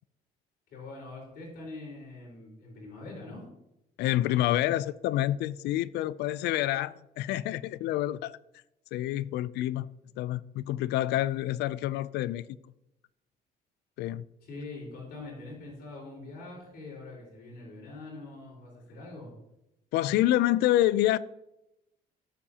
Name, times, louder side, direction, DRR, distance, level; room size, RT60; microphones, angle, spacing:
voice 1, 0.7-3.5 14.4-19.3, left 2 dB, 65° left, 4.5 m, -43 dB
voice 2, 4.0-8.4 8.9-9.9 10.2-12.5 14.0-14.3 19.9-21.2, left 14 dB, 80° left, 0.4 m, -27 dB
18.5 x 7.3 x 2.9 m
cardioid pair, 110°, 17 cm